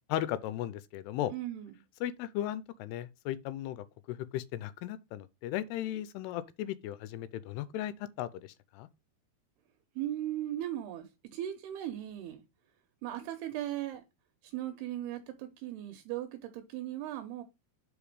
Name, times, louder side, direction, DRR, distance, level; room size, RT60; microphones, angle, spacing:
voice 1, 0.1-1.3 2.0-8.5 8.7-8.9, left 12 dB, 85° left, 2.6 m, -36 dB
voice 2, 1.3-1.7 10.0-12.4 13.0-14.0 14.5-17.4, right 13 dB, 85° right, 2.8 m, -38 dB
5.6 x 5.1 x 4.8 m
omnidirectional pair, 4.7 m